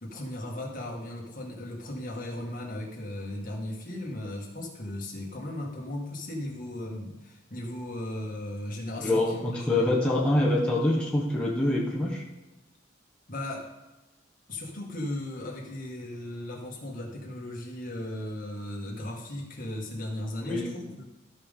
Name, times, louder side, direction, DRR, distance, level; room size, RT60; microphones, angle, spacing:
voice 1, 0.0-10.0 13.3-13.7 14.5-21.0, left 1 dB, 45° left, -2 dB, 2.0 m, -36 dB
voice 2, 9.0-12.2 20.4-20.7, left 1 dB, 5° left, -4 dB, 1.0 m, -25 dB
14.0 x 5.2 x 3.7 m, 1.0 s
head